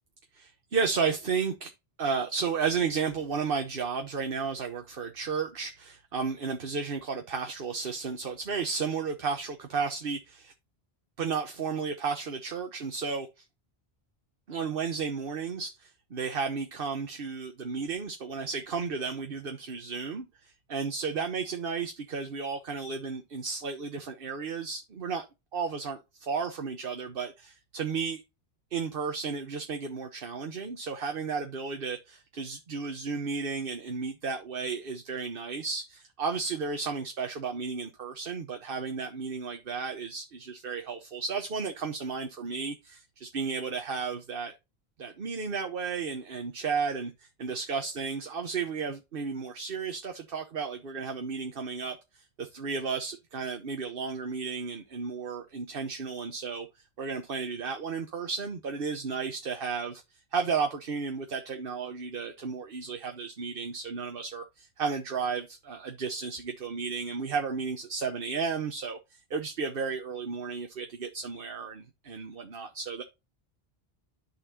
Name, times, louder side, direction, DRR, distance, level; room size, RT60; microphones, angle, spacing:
voice 1, 0.3-1.7 2.0-10.5 11.2-13.3 14.5-25.3 25.5-28.2 28.7-44.5 45.0-56.7 57.0-60.0 60.3-73.0, right 5 dB, 65° right, 1.2 m, -33 dB
13.0 x 4.3 x 2.7 m
omnidirectional pair, 1.0 m